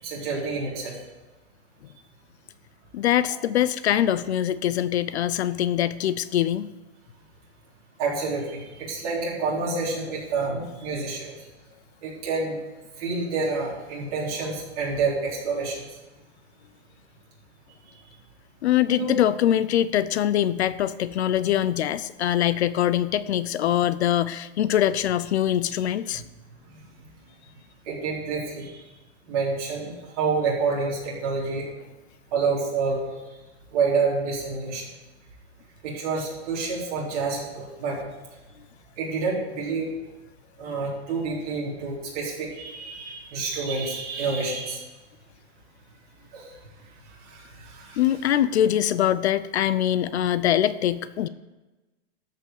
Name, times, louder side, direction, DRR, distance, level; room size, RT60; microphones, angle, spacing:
voice 1, 0.0-0.9 8.0-11.3 12.0-12.6 13.0-15.8 19.0-19.1 27.9-28.8 29.3-31.7 32.3-33.0 33.7-34.9 35.8-38.1 39.0-39.9 40.6-44.8 46.3-46.5 47.3-48.0, right 4 dB, 35° right, -5 dB, 3.8 m, -28 dB
voice 2, 2.9-6.7 18.6-26.2 47.9-51.3, left 11 dB, 70° left, 16 dB, 0.6 m, -23 dB
13.0 x 5.9 x 7.2 m, 1.1 s
supercardioid pair, 180°, 34 cm